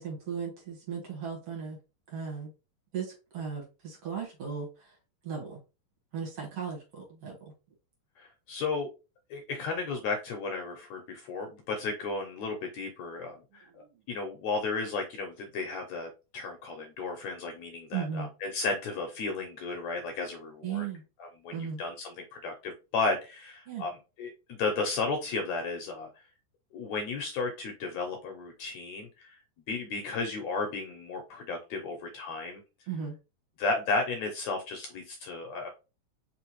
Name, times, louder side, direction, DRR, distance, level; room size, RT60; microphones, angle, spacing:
voice 1, 0.0-1.8 2.1-2.5 2.9-4.9 5.2-5.6 6.1-7.4 17.9-18.3 20.6-21.0 21.5-21.8 23.7-23.9 32.9-33.2, right 6 dB, 55° right, -1 dB, 2.3 m, -36 dB
voice 2, 8.2-8.9 9.3-13.7 14.1-20.9 21.2-26.1 26.7-29.4 29.7-32.6 33.6-35.7, left 3 dB, 70° left, 3 dB, 1.8 m, -34 dB
4.9 x 3.3 x 3.0 m, 0.29 s
omnidirectional pair, 3.7 m